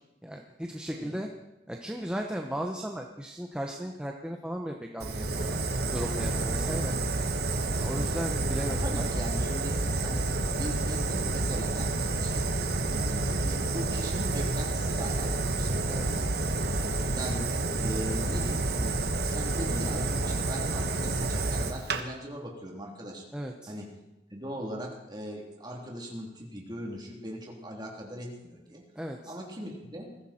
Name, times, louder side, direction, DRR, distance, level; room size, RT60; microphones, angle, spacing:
voice 1, 0.2-1.3 1.7-5.5 5.9-7.0 7.7-9.1 15.9-16.2 23.3-23.7 29.0-29.3, equal, 5° right, 2 dB, 0.9 m, -36 dB
Fire, 5.0-22.0, right 2 dB, 60° right, 1.4 m, -29 dB
voice 2, 8.6-9.8 10.0-12.5 12.9-16.3 16.7-23.2 23.7-23.9 24.3-28.9 29.2-30.1, equal, 25° right, -1 dB, 3.2 m, -40 dB
21.0 x 15.0 x 4.4 m, 0.99 s
head